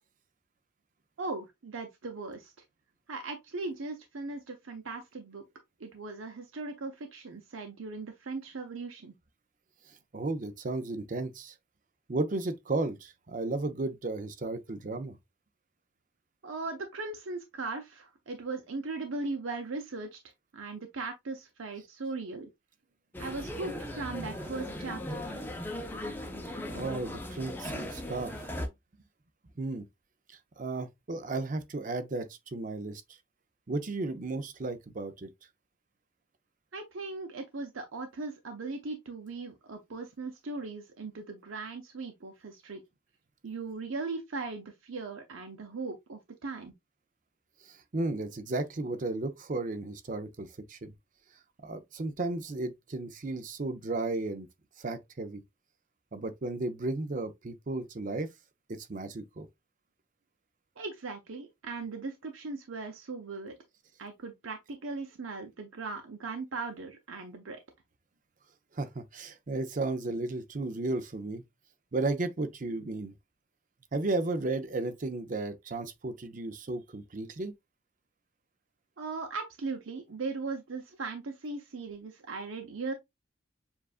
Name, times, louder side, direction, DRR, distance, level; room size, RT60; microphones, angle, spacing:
voice 1, 1.2-2.5 3.1-5.4 5.8-9.1 16.4-20.2 20.5-22.5 23.2-25.4 36.7-42.8 43.4-46.7 60.8-63.5 64.0-67.6 79.0-82.9, right 3 dB, 90° right, 0.7 m, -38 dB
voice 2, 10.1-11.5 12.1-15.2 26.7-28.3 29.6-29.9 30.6-33.0 33.7-35.3 47.9-50.9 51.6-54.5 54.8-55.4 56.1-58.3 58.7-59.5 68.8-71.4 71.9-73.1 73.9-77.5, right 2 dB, 40° right, 0.6 m, -34 dB
sound 1, 23.1-28.7, left 1 dB, 10° left, 0.6 m, -38 dB
7.1 x 2.5 x 2.4 m
head